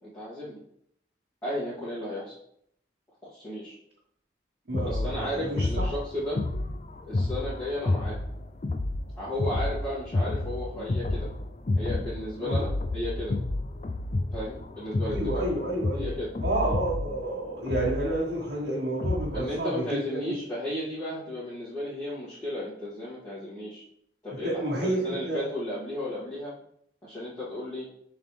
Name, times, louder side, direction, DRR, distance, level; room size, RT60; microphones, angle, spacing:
voice 1, 0.0-0.6 1.4-2.3 3.2-3.7 4.8-6.4 7.0-8.2 9.2-11.3 11.7-13.4 14.3-15.5 16.0-16.3 19.3-23.8 24.2-26.5 27.0-27.9, left 1 dB, 15° left, -14 dB, 2.5 m, -34 dB
sound 1, 4.7-19.5, left 2 dB, 35° left, 0.4 m, -31 dB
voice 2, 4.7-5.9 12.4-12.6 15.1-16.1 16.4-20.3 24.4-25.5, right 1 dB, 60° right, -6 dB, 1.4 m, -30 dB
7.4 x 4.0 x 3.3 m, 0.71 s
head